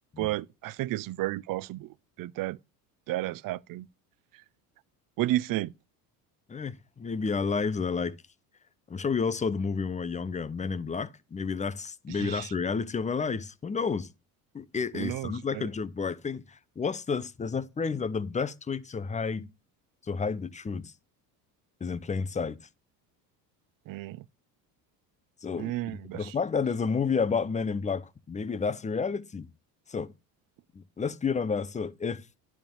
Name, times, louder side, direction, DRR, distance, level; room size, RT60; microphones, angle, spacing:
voice 1, 0.2-2.6 3.1-3.9 5.2-5.7 12.2-12.5 14.9-15.6 23.9-24.2 25.6-26.3, right 16 dB, 50° right, 0.5 m, -32 dB
voice 2, 6.5-8.1 8.9-14.1 14.5-19.5 20.1-20.9 21.8-22.6 25.4-29.5 29.9-30.1 30.7-32.2, left 5 dB, 15° left, 0.5 m, -31 dB
10.5 x 3.6 x 7.1 m
supercardioid pair, 75°, 46 cm